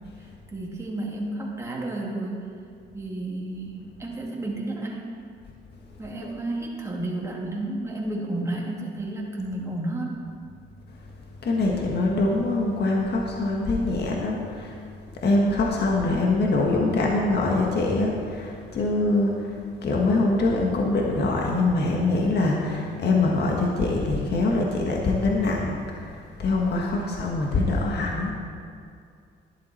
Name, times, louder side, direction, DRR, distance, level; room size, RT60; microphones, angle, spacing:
voice 1, 0.5-2.4 2.9-5.2 6.0-10.2 27.0-27.2, right 2 dB, 15° right, -3 dB, 2.7 m, -31 dB
voice 2, 10.9-14.8 15.1-28.3, left 2 dB, 55° left, -1 dB, 1.7 m, -24 dB
11.5 x 11.0 x 4.5 m, 2.3 s
cardioid pair, 90°, 20 cm